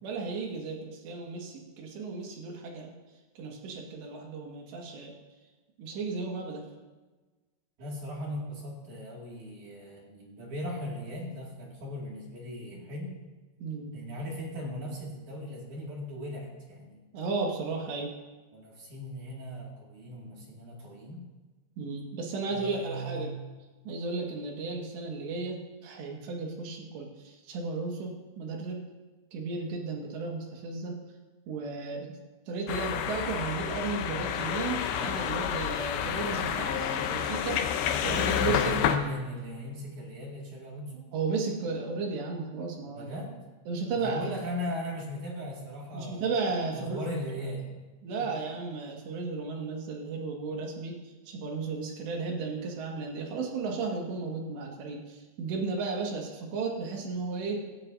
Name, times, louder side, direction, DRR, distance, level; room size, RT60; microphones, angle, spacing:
voice 1, 0.0-2.9 3.4-5.1 5.8-6.7 13.6-13.9 17.1-18.1 21.8-23.3 23.9-28.8 29.3-31.0 31.5-32.2 32.5-37.6 38.0-38.7 41.1-43.1 43.7-44.3 45.9-47.0 48.0-51.0 51.3-57.6, right 4 dB, 70° right, 0 dB, 3.9 m, -34 dB
voice 2, 7.8-13.1 13.9-17.0 18.5-21.3 22.5-23.4 38.3-41.1 42.9-43.5 44.0-46.3 46.7-47.7 48.2-48.3, left 1 dB, 50° right, -3 dB, 3.1 m, -38 dB
sound 1, 32.7-39.0, left 9 dB, 75° left, 2.9 m, -29 dB
17.0 x 15.5 x 2.7 m, 1.2 s
omnidirectional pair, 5.5 m